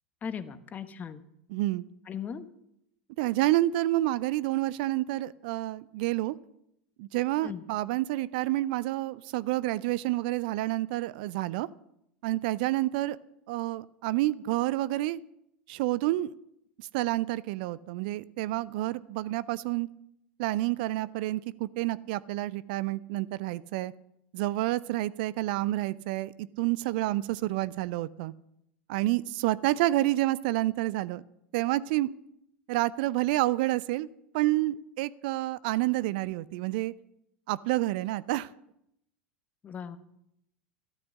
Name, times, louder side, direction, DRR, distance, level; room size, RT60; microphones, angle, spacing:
voice 1, 0.2-1.2 2.1-2.5 7.4-7.6 39.6-40.0, left 7 dB, 25° left, 12 dB, 1.1 m, -38 dB
voice 2, 1.5-1.9 3.2-6.4 7.0-11.7 12.2-13.2 13.5-15.2 15.7-16.3 16.8-19.9 20.4-23.9 24.3-28.3 28.9-31.2 31.5-32.1 32.7-34.1 34.3-36.9 37.5-38.5, right 17 dB, 55° right, 20 dB, 0.4 m, -29 dB
13.0 x 13.0 x 6.4 m, 0.78 s
figure-of-eight pair, 85°, 6 cm